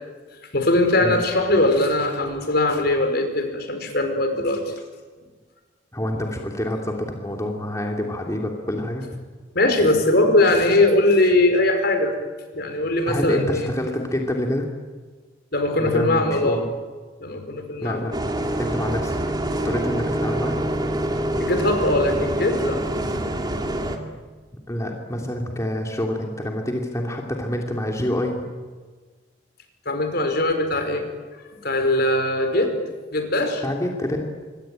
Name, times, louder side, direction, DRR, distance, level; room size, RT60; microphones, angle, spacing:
voice 1, 0.5-4.7 9.5-12.1 12.5-13.7 15.5-16.6 17.2-18.0 21.4-22.8 29.8-31.0 31.6-32.7 33.1-33.6, left 2 dB, 55° left, 6 dB, 4.8 m, -20 dB
voice 2, 5.9-9.1 13.1-14.7 15.8-16.7 17.8-19.2 19.6-20.6 24.7-28.5 33.6-34.3, left 1 dB, 15° left, 1 dB, 2.6 m, -27 dB
Bus, 18.1-24.0, right 1 dB, 20° right, 2.5 m, -25 dB
26.5 x 23.5 x 9.0 m, 1.4 s
head